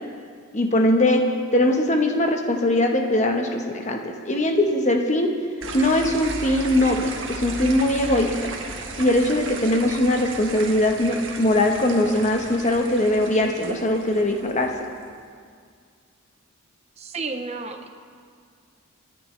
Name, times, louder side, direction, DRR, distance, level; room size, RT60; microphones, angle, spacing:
voice 1, 0.5-1.3 1.5-5.3 5.7-8.5 9.0-14.7, left 1 dB, 35° left, 3 dB, 1.2 m, -21 dB
sound 1, 5.6-15.0, right 3 dB, 65° right, 1.4 m, -35 dB
voice 2, 17.0-17.9, right 4 dB, 30° right, 6 dB, 0.8 m, -32 dB
28.5 x 10.5 x 3.3 m, 2.1 s
head